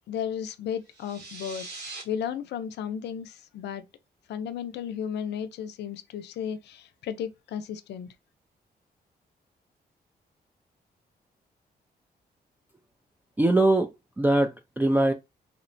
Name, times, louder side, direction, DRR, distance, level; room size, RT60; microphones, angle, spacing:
voice 1, 0.1-1.7 2.0-3.8 4.3-8.1, left 8 dB, 80° left, 0.4 m, -34 dB
sound 1, 0.9-2.0, right 3 dB, 75° right, 1.1 m, -41 dB
voice 2, 13.4-13.9 14.2-15.1, right 2 dB, 10° right, 0.3 m, -22 dB
2.8 x 2.1 x 2.4 m
cardioid pair, 75°, 17 cm